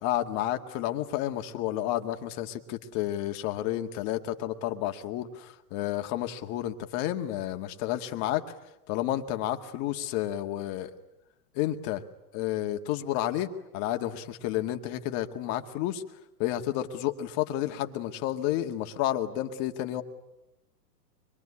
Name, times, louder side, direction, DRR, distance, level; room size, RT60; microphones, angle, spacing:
voice 1, 0.0-8.4 8.9-10.9 11.5-12.0 12.3-16.0 16.4-20.0, left 13 dB, 35° left, 6 dB, 2.0 m, -31 dB
25.0 x 22.5 x 9.9 m, 0.90 s
hypercardioid pair, 135°, 49 cm